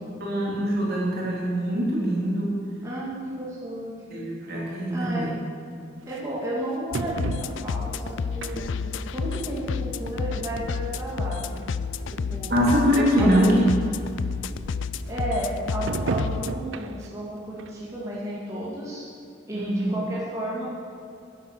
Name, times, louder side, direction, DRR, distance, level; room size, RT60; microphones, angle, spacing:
voice 1, 0.2-2.5 4.1-5.3 12.5-13.6 19.5-20.0, equal, 55° right, -4 dB, 3.5 m, -23 dB
voice 2, 2.8-4.2 4.9-5.3 6.1-11.6 12.1-12.6 13.2-13.6 15.1-19.1 19.5-20.7, right 1 dB, 15° right, -7 dB, 2.3 m, -33 dB
sound 1, 5.0-5.1 6.1-6.2 6.9-7.9 8.4-8.9 9.3-9.4 10.4-10.5 10.7-10.8 11.6-11.7 12.0-12.1 12.4-12.5 12.7-13.1 13.7-13.8 15.9-17.2 17.6-17.7 18.2-18.3, right 3 dB, 75° right, 0.6 m, -32 dB
sound 2, 6.9-16.5, left 5 dB, 75° left, 0.4 m, -31 dB
11.5 x 10.5 x 6.7 m, 2.5 s
head